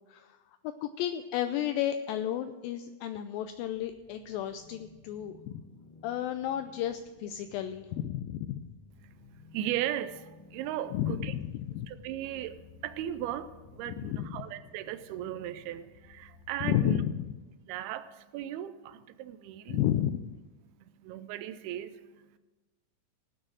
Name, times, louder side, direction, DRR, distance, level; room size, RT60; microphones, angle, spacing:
voice 1, 0.8-5.6 6.0-8.7 10.9-11.9 13.9-14.3 16.6-17.3 19.7-20.3, left 11 dB, 80° left, 9 dB, 2.1 m, -32 dB
sound 1, 3.4-17.2, left 4 dB, 55° left, 2.2 m, -56 dB
voice 2, 9.0-11.3 11.9-17.0 17.7-19.8 20.7-22.4, right 12 dB, 90° right, 12 dB, 2.5 m, -37 dB
17.5 x 6.2 x 6.3 m, 1.2 s
omnidirectional pair, 4.4 m